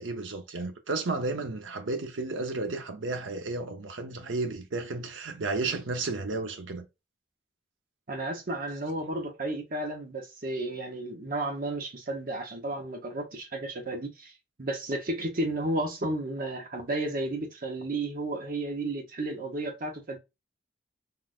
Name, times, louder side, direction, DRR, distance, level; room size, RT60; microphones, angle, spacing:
voice 1, 0.0-6.8, right 3 dB, 90° right, 0.7 m, -33 dB
voice 2, 8.1-14.3 14.6-20.2, right 2 dB, 50° right, 0.9 m, -33 dB
3.8 x 2.5 x 2.4 m
head